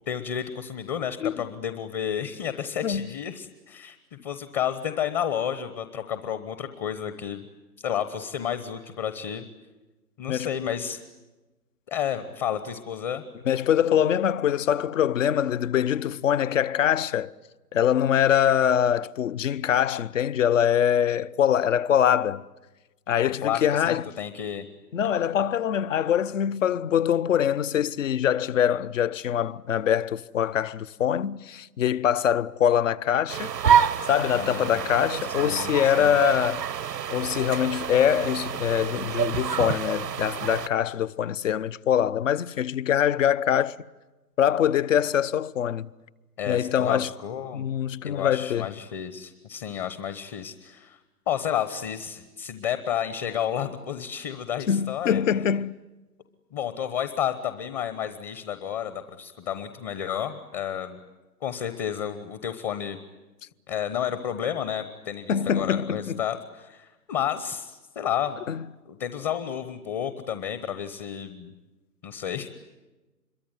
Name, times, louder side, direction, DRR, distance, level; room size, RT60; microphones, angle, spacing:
voice 1, 0.1-7.5 7.8-9.4 10.2-11.0 11.9-13.2 23.4-24.7 34.3-34.8 35.2-36.2 46.4-47.7 48.0-51.0 51.3-55.2 56.5-61.0 61.4-63.0 63.7-68.5 68.9-71.5 72.0-72.5, left 9 dB, 25° left, 1.1 m, -31 dB
voice 2, 13.5-17.3 17.7-22.4 23.1-24.0 24.9-33.5 34.0-36.6 37.1-43.8 44.4-45.9 46.5-47.1 47.5-48.7 54.7-55.8 65.3-66.2 68.5-68.6, left 9 dB, 50° left, 0.9 m, -24 dB
sound 1, 33.3-40.7, right 8 dB, 80° right, 0.9 m, -27 dB
26.0 x 23.0 x 9.5 m
figure-of-eight pair, 135°, 49 cm